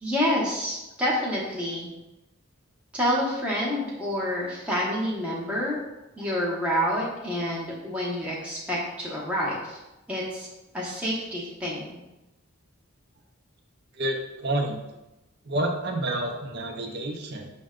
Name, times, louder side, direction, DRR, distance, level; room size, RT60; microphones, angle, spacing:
voice 1, 0.0-1.9 2.9-5.8 6.2-9.8 10.1-10.5 10.7-11.9, equal, 5° right, -6 dB, 0.8 m, -28 dB
voice 2, 13.9-14.8 15.4-17.5, right 1 dB, 50° right, 2 dB, 0.6 m, -29 dB
6.1 x 2.1 x 3.6 m, 0.97 s
head